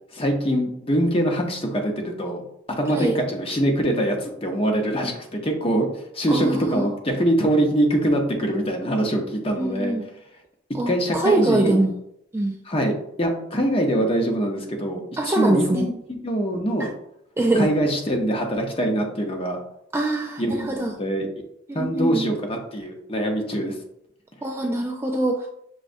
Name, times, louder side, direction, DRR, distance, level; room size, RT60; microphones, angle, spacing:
voice 1, 0.1-2.4 2.7-9.9 10.9-11.8 12.6-15.9 16.2-16.9 17.5-19.6 20.4-21.3 21.7-23.7, right 1 dB, 30° left, 2 dB, 0.7 m, -23 dB
voice 2, 6.3-6.9 9.6-10.0 10.7-11.9 12.3-12.6 15.2-15.8 16.8-16.9 17.4-17.7 19.9-20.9 21.7-22.3 24.4-25.5, right 2 dB, 15° right, 2 dB, 0.3 m, -23 dB
6.2 x 3.1 x 2.6 m, 0.75 s
head